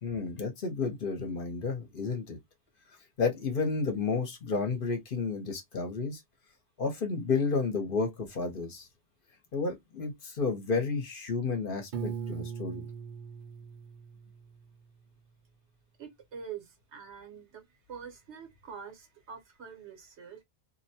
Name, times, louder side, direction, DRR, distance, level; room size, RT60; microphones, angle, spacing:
voice 1, 0.0-2.4 3.2-6.2 6.8-8.9 9.5-12.8, left 4 dB, 55° left, 0.9 m, -31 dB
Piano, 11.9-14.9, right 7 dB, 55° right, 0.6 m, -40 dB
voice 2, 16.0-20.4, right 7 dB, 80° right, 1.2 m, -45 dB
2.6 x 2.1 x 2.7 m
omnidirectional pair, 1.1 m